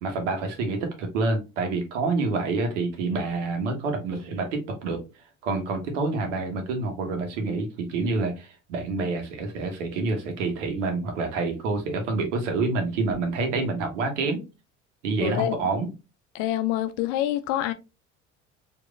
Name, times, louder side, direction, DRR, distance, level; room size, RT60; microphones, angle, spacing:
voice 1, 0.0-5.0 5.4-14.4 15.0-15.9, right 3 dB, 75° right, 1.2 m, -27 dB
voice 2, 15.2-15.6 16.3-17.7, left 12 dB, 60° left, 0.6 m, -26 dB
4.7 x 2.9 x 2.4 m
hypercardioid pair, 65°, 37 cm